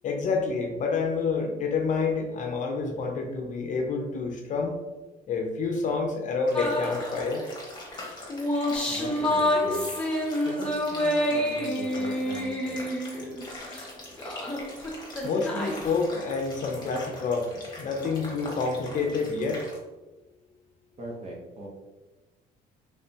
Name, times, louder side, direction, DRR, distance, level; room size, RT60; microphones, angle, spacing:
voice 1, 0.0-4.8 5.3-7.5 15.2-19.7, left 4 dB, 45° left, 3 dB, 0.6 m, -28 dB
sound 1, 6.5-19.8, left 2 dB, 25° left, 1.4 m, -43 dB
sound 2, 6.5-7.4 8.0-13.9 14.2-16.1, left 1 dB, 5° left, 0.8 m, -28 dB
voice 2, 8.9-9.9 10.4-12.9 21.0-21.7, right 1 dB, 40° right, -2 dB, 1.0 m, -40 dB
3.3 x 3.3 x 2.8 m, 1.2 s
cardioid pair, 110°, 17 cm